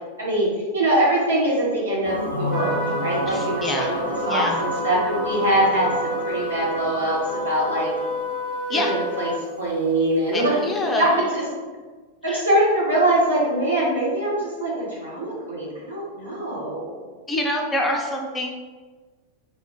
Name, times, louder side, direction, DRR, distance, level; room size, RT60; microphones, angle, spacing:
voice 1, 0.2-7.9 8.8-9.3 9.6-10.6 11.0-11.4 12.2-16.9, right 1 dB, 75° right, -6 dB, 1.4 m, -23 dB
sound 1, 2.0-9.6, left 1 dB, 80° left, 0.5 m, -32 dB
Trumpet, 2.5-9.4, equal, 15° right, 0.9 m, -30 dB
voice 2, 3.3-3.9 4.2-4.6 8.7-8.9 10.3-11.1 12.2-12.4 17.3-18.5, left 1 dB, 15° left, 1 dB, 0.5 m, -26 dB
4.0 x 2.5 x 3.6 m, 1.4 s
figure-of-eight pair, 90°, 0 cm